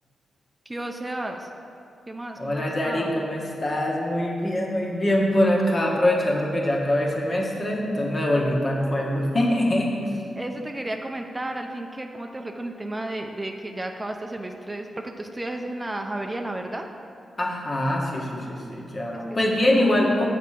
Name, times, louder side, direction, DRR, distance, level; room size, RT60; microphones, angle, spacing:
voice 1, 0.7-1.5 2.1-3.1 10.3-16.9 19.1-19.4, right 1 dB, 25° right, 3 dB, 0.6 m, -33 dB
voice 2, 2.4-10.2 17.4-20.3, left 1 dB, 40° left, -2 dB, 1.5 m, -23 dB
6.5 x 5.0 x 5.8 m, 2.5 s
supercardioid pair, 45°, 0 cm